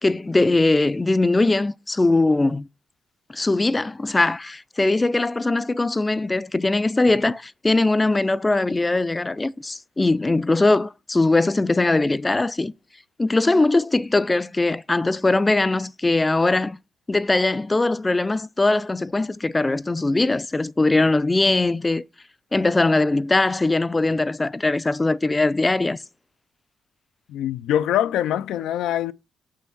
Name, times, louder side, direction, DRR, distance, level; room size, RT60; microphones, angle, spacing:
voice 1, 0.0-2.7 3.3-12.7 13.2-16.8 17.1-22.0 22.5-26.0, left 2 dB, 20° left, 0.4 m, -21 dB
voice 2, 27.3-29.1, left 11 dB, 80° left, 0.4 m, -23 dB
6.0 x 5.7 x 6.1 m
cardioid pair, 90°, 0 cm